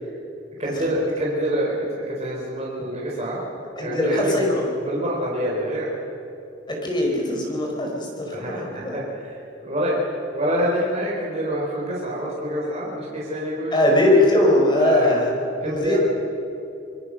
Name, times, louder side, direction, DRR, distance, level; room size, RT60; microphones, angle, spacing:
voice 1, 0.6-3.4 3.8-4.3 4.8-5.9 8.3-9.3 9.6-13.9 14.8-15.1 15.6-16.0, equal, 35° right, -4 dB, 4.4 m, -26 dB
voice 2, 3.8-4.7 6.7-9.0 13.7-15.3 15.6-16.0, left 1 dB, 25° left, 0 dB, 4.9 m, -20 dB
26.0 x 21.5 x 6.5 m, 2.8 s
head